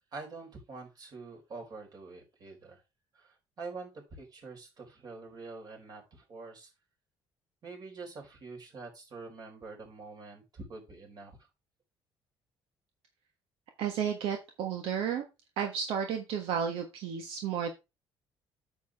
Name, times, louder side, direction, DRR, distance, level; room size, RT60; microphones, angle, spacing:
voice 1, 0.1-2.8 3.1-6.7 7.6-11.4, right 3 dB, 45° right, 2 dB, 4.5 m, -46 dB
voice 2, 13.8-15.2 15.6-17.7, right 8 dB, 80° right, 5 dB, 1.4 m, -32 dB
9.2 x 7.2 x 3.5 m, 0.25 s
cardioid pair, 130°, 9 cm